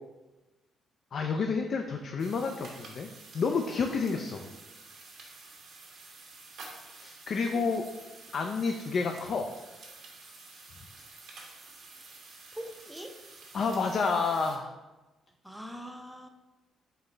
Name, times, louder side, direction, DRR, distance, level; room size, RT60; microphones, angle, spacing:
voice 1, 1.1-3.1 3.3-4.4 6.9-7.8 8.3-9.5 13.5-14.7, left 4 dB, 55° left, 4 dB, 0.3 m, -29 dB
sound 1, 2.2-14.6, right 3 dB, 70° right, 1.1 m, -50 dB
voice 2, 12.5-13.2 15.4-16.3, equal, ahead, 4 dB, 0.5 m, -42 dB
4.0 x 3.9 x 3.2 m, 1.1 s
cardioid pair, 90°, 0 cm